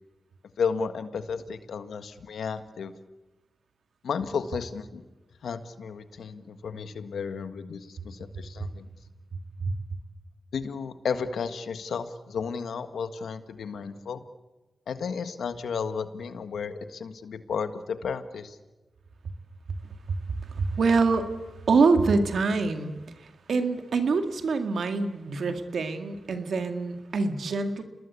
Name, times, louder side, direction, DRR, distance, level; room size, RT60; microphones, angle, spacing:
voice 1, 0.6-2.9 4.0-5.0 5.4-8.9 10.5-14.2 14.9-18.6, left 6 dB, 85° left, 10 dB, 1.6 m, -33 dB
voice 2, 19.7-21.3 21.7-27.8, right 4 dB, 75° right, 7 dB, 2.0 m, -26 dB
27.5 x 20.0 x 8.4 m, 1.1 s
cardioid pair, 45°, 0 cm